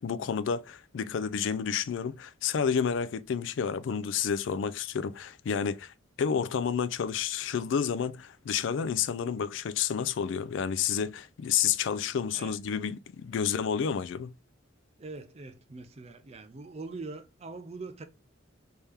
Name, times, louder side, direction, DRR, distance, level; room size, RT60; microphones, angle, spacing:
voice 1, 0.0-14.3, left 7 dB, 70° left, 0.3 m, -30 dB
voice 2, 15.0-18.0, right 3 dB, 30° right, 0.5 m, -42 dB
3.5 x 2.8 x 3.2 m
head